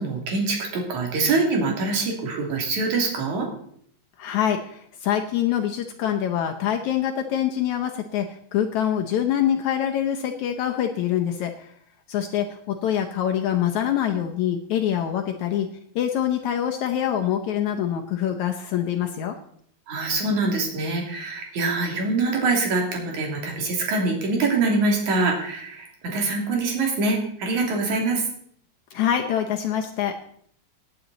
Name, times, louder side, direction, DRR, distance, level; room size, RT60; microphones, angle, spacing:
voice 1, 0.0-3.5 19.9-28.3, right 3 dB, 55° right, 1 dB, 3.9 m, -24 dB
voice 2, 4.2-11.7 12.1-15.7 16.0-19.4 28.9-30.1, left 10 dB, 70° left, 4 dB, 1.9 m, -25 dB
18.0 x 9.3 x 4.0 m, 0.64 s
omnidirectional pair, 4.1 m